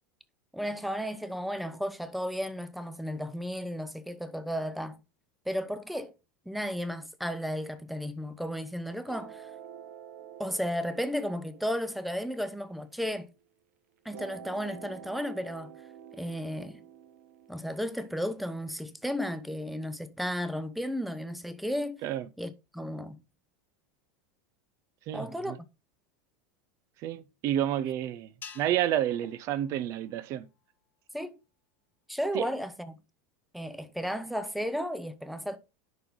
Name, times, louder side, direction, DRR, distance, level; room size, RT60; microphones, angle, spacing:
voice 1, 0.5-5.0 5.5-6.1 6.5-9.5 10.4-13.3 14.0-15.7 16.1-16.8 17.5-22.0 22.4-23.2 25.1-25.6 31.1-31.4 32.1-33.0 33.5-35.6, equal, ahead, 0.6 m, -34 dB
sound 1, 9.1-13.5 14.1-19.1, right 9 dB, 90° right, 1.1 m, -49 dB
voice 2, 25.1-25.6 27.0-30.5 32.3-32.5, right 11 dB, 40° right, 0.6 m, -30 dB
sound 2, 28.4-30.9, left 7 dB, 25° left, 0.9 m, -51 dB
10.5 x 3.9 x 3.7 m
supercardioid pair, 150°, 8 cm